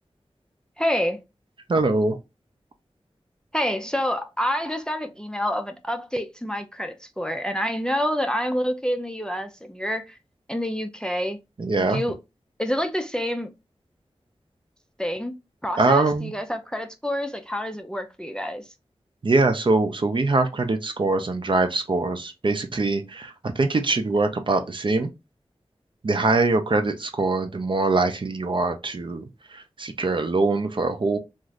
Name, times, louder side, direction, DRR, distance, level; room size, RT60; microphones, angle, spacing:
voice 1, 0.8-1.2 3.5-10.1 10.5-11.4 11.8-12.2 12.6-13.5 15.0-15.4 15.6-18.6, equal, 5° left, 0.4 m, -27 dB
voice 2, 1.7-2.2 11.6-12.0 15.8-16.3 19.2-25.1 26.0-31.2, right 3 dB, 50° right, 0.5 m, -23 dB
2.6 x 2.5 x 3.1 m
wide cardioid pair, 70°, 11 cm